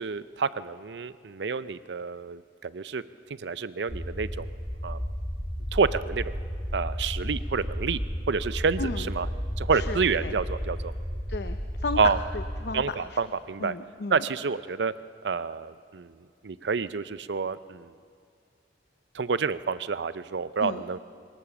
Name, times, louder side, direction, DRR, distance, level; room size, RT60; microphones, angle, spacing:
voice 1, 0.0-3.0 3.4-4.5 4.8-5.0 5.7-6.3 6.7-8.0 8.3-9.3 9.6-10.9 12.0-12.2 12.7-13.7 14.1-14.9 15.2-16.1 16.4-17.9 19.1-21.0, right 5 dB, 75° right, 15 dB, 0.6 m, -28 dB
sound 1, 3.9-12.7, equal, 10° left, 1.8 m, -33 dB
voice 2, 8.8-9.1 9.7-10.4 11.3-13.2 13.6-14.2 20.6-20.8, left 3 dB, 70° left, 8 dB, 0.7 m, -34 dB
23.0 x 18.5 x 7.1 m, 2.2 s
head